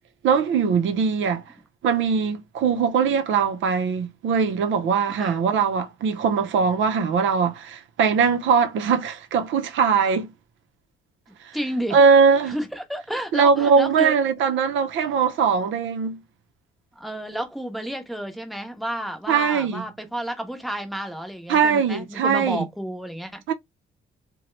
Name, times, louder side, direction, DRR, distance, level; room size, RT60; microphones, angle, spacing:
voice 1, 0.2-1.4 1.8-10.3 11.9-12.6 13.3-16.2 19.3-19.8 21.5-22.6 23.5-23.6, right 6 dB, 75° right, 0.6 m, -21 dB
voice 2, 11.5-12.0 12.4-14.1 15.0-15.1 17.0-23.4, equal, ahead, 0.8 m, -31 dB
2.9 x 2.2 x 3.0 m
cardioid pair, 90°, 20 cm